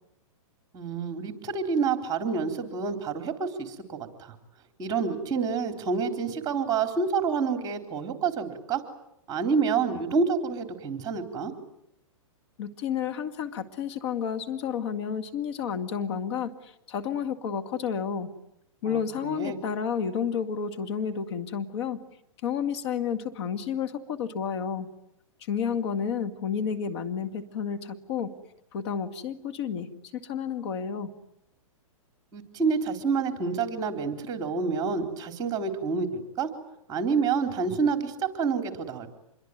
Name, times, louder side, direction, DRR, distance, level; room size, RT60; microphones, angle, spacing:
voice 1, 0.7-4.4 4.8-8.8 9.3-11.5 18.9-19.6 32.3-36.5 36.9-39.1, right 5 dB, 20° right, 7 dB, 3.9 m, -28 dB
voice 2, 12.6-18.3 18.8-22.0 22.4-24.9 25.4-28.3 28.7-31.1, left 7 dB, 50° left, 8 dB, 2.1 m, -31 dB
27.0 x 22.5 x 9.4 m, 0.80 s
hypercardioid pair, 140°, 17 cm